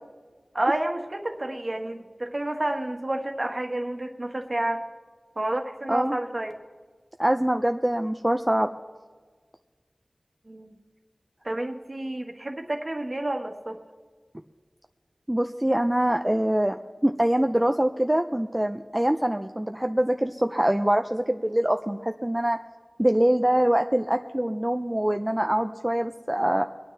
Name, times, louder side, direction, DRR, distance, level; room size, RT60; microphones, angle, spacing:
voice 1, 0.5-4.8 5.4-6.5 10.5-10.8 11.4-13.8, right 1 dB, 40° right, 4 dB, 1.5 m, -30 dB
voice 2, 7.2-8.7 15.3-22.6 23.0-26.6, right 1 dB, 15° right, 5 dB, 0.5 m, -24 dB
24.5 x 9.3 x 3.3 m, 1.5 s
wide cardioid pair, 50°, 0 cm